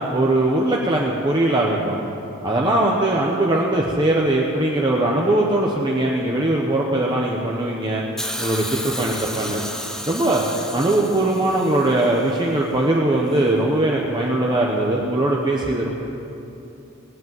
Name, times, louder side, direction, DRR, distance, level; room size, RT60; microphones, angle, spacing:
voice 1, 0.1-2.0 2.4-8.0 8.4-9.6 10.0-10.4 10.7-15.9, right 1 dB, 20° right, -2 dB, 1.0 m, -20 dB
Hiss, 8.2-12.3 13.3-13.4, equal, 5° left, 0.7 m, -32 dB
19.0 x 8.3 x 7.8 m, 2.9 s
head